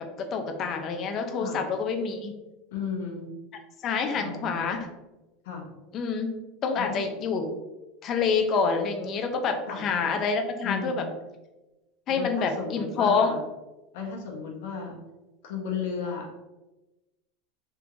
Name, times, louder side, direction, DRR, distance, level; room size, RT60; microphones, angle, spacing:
voice 1, 0.3-2.3 3.8-4.8 5.9-6.3 6.6-7.5 8.0-11.0 12.1-13.3, left 5 dB, 25° left, 5 dB, 0.4 m, -27 dB
voice 2, 2.7-3.3 4.1-4.6 5.4-5.6 6.7-7.0 9.7-9.9 10.6-11.1 12.1-13.4 13.9-15.0 15.4-16.3, left 6 dB, 65° left, 1 dB, 0.8 m, -34 dB
3.5 x 2.5 x 3.0 m, 1.0 s
supercardioid pair, 180°, 0 cm